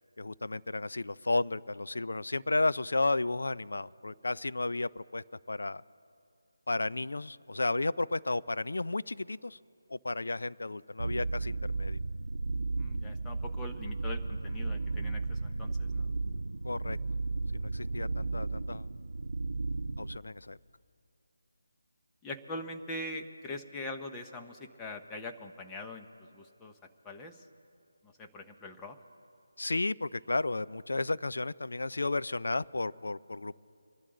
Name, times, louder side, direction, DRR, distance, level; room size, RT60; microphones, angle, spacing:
voice 1, 0.2-5.8 6.7-9.6 9.9-12.0 16.6-17.0 17.5-18.9 20.0-20.6 29.6-33.6, left 2 dB, 80° left, 17 dB, 0.4 m, -33 dB
sound 1, 11.0-20.2, right 3 dB, 85° right, 0.6 m, -34 dB
voice 2, 12.8-16.1 22.2-26.8 27.0-27.5 28.0-29.0, left 2 dB, 10° left, 3 dB, 0.7 m, -42 dB
25.5 x 12.0 x 3.8 m, 2.5 s
figure-of-eight pair, 170°, 0 cm